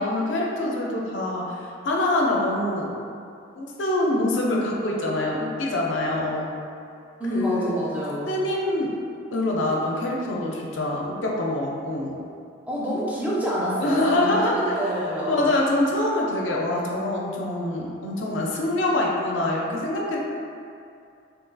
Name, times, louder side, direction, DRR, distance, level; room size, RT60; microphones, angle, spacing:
voice 1, 0.0-2.9 3.5-6.5 7.3-7.7 8.3-8.9 9.3-12.2 13.8-14.6 15.3-20.2, left 1 dB, 70° left, -2 dB, 0.5 m, -25 dB
voice 2, 7.2-8.3 12.7-15.5, equal, 5° right, -7 dB, 0.4 m, -27 dB
2.7 x 2.3 x 3.8 m, 2.5 s
head